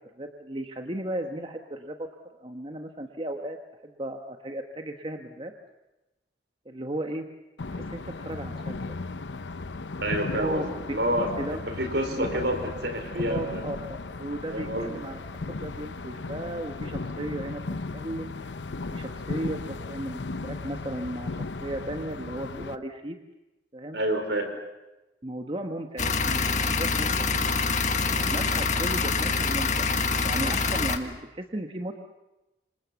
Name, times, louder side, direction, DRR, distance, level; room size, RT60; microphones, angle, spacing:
voice 1, 0.2-3.6 3.8-5.5 6.6-7.2 7.7-9.0 10.4-10.6 11.4-11.6 12.1-12.3 13.3-13.8 14.2-15.2 15.6-17.6 17.9-18.5 18.9-23.2 23.7-24.0 25.2-27.5 28.1-32.0, right 1 dB, 30° right, 4 dB, 1.2 m, -35 dB
sound 1, 7.6-22.8, left 3 dB, 85° left, 0.8 m, -36 dB
voice 2, 10.0-12.6 12.8-13.6 14.5-14.9 23.9-24.5, right 1 dB, 70° right, 6 dB, 4.7 m, -28 dB
sound 2, 26.0-31.0, left 4 dB, 40° left, 1.6 m, -25 dB
27.0 x 26.0 x 7.1 m, 1.0 s
head